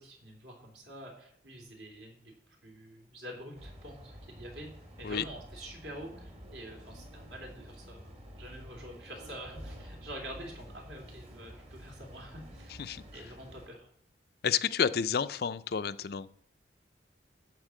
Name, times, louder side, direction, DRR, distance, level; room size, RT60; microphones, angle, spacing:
voice 1, 0.0-2.3 2.6-4.7 5.0-12.8 13.1-13.9, right 1 dB, 65° right, 1 dB, 3.1 m, -46 dB
sound 1, 3.5-13.7, equal, 35° right, 1.7 m, -49 dB
voice 2, 14.4-16.3, left 7 dB, 55° left, 13 dB, 0.4 m, -30 dB
12.5 x 4.4 x 7.5 m, 0.64 s
head